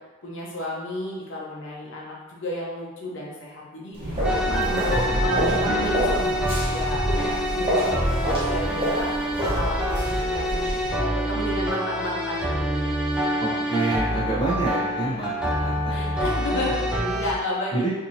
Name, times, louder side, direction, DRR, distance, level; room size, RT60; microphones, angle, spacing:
voice 1, 0.2-13.3 13.7-13.8 14.1-14.2 15.9-17.9, left 1 dB, 60° left, -4 dB, 0.8 m, -32 dB
sound 1, 3.9-11.0, equal, 25° right, 1.1 m, -27 dB
sound 2, 4.2-17.3, equal, 5° right, 0.4 m, -26 dB
voice 2, 4.5-5.9 13.4-16.1 16.5-16.8 17.7-17.9, right 2 dB, 20° left, -6 dB, 0.8 m, -29 dB
3.6 x 2.8 x 2.8 m, 1.2 s
head